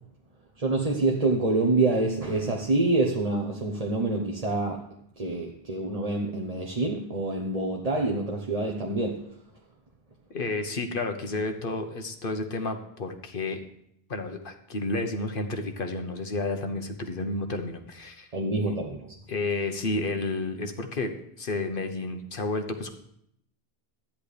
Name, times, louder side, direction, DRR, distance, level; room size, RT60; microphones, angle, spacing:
voice 1, 0.6-4.8 5.2-9.2 18.3-19.0, right 2 dB, 35° right, 1 dB, 1.1 m, -26 dB
voice 2, 10.3-13.6 14.1-18.3 18.6-18.8 19.3-21.1 21.4-22.9, left 2 dB, 55° left, 6 dB, 1.2 m, -31 dB
13.0 x 10.0 x 3.3 m, 0.72 s
omnidirectional pair, 1.1 m